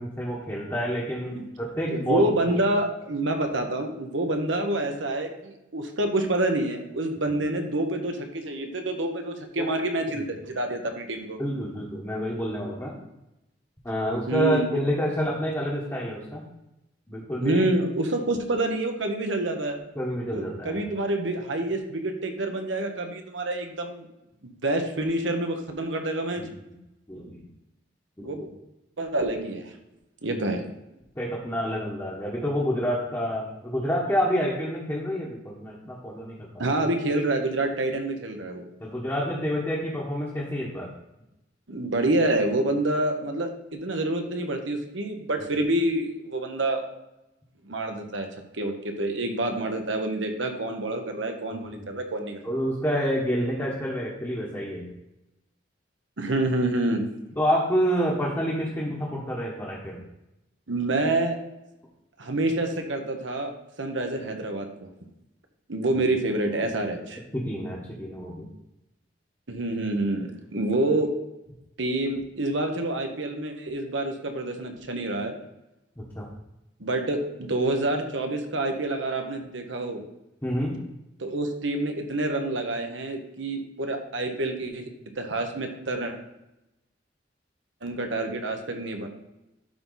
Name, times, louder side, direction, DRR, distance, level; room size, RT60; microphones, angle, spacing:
voice 1, 0.0-2.3 9.6-9.7 11.4-12.9 13.8-16.4 17.1-17.6 19.9-20.8 26.4-26.5 27.1-27.4 28.2-28.3 30.2-30.4 31.1-36.6 38.8-40.9 51.5-51.9 52.4-54.9 57.4-60.0 65.9-66.0 67.3-68.5 76.0-76.3 80.4-80.8, equal, 15° left, -5 dB, 1.4 m, -28 dB
voice 2, 1.9-11.4 14.3-14.7 17.4-19.8 20.3-24.1 24.6-26.4 28.2-28.5 29.0-29.7 30.2-30.6 36.6-38.6 41.7-46.8 47.7-48.3 48.6-52.4 56.2-57.0 60.7-61.4 62.2-63.5 63.8-64.9 65.7-67.2 69.5-71.1 71.8-75.3 76.8-80.0 81.2-84.9 85.2-86.1 87.8-89.1, right 2 dB, 80° right, 4 dB, 1.2 m, -27 dB
12.0 x 4.0 x 4.1 m, 0.92 s
head